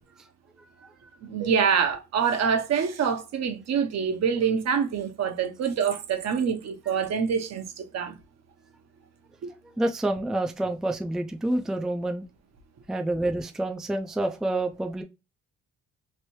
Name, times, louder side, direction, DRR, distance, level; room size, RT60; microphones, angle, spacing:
voice 1, 1.2-8.1 9.4-9.5, right 7 dB, 60° right, 0.8 m, -26 dB
voice 2, 9.8-12.3 12.9-15.0, right 1 dB, ahead, 0.4 m, -28 dB
3.2 x 2.6 x 3.0 m
cardioid pair, 90°, 30 cm